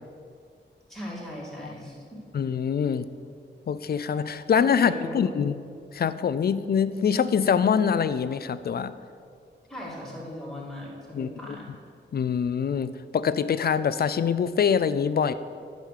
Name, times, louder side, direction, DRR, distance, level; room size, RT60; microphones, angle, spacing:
voice 1, 0.9-2.2 4.7-5.5 9.7-11.7, equal, ahead, -6 dB, 2.3 m, -38 dB
voice 2, 2.3-3.1 3.7-5.6 5.9-8.9 11.1-11.3 12.1-15.3, left 7 dB, 55° left, 14 dB, 0.4 m, -24 dB
10.5 x 5.2 x 6.6 m, 2.2 s
wide cardioid pair, 160°, 19 cm